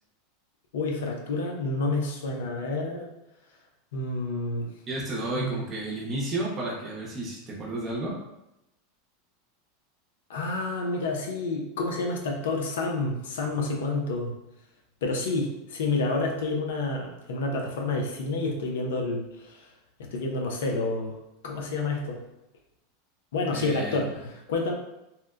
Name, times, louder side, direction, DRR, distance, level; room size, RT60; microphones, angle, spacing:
voice 1, 0.7-3.1 3.9-4.7 5.4-5.6 10.3-14.3 15.0-19.7 20.0-21.2 21.4-22.2 23.3-24.7, left 3 dB, 80° left, 0 dB, 0.4 m, -29 dB
voice 2, 4.9-8.2 23.5-24.0, right 2 dB, 30° right, -3 dB, 0.6 m, -32 dB
2.7 x 2.0 x 2.3 m, 0.89 s
supercardioid pair, 120°, 0 cm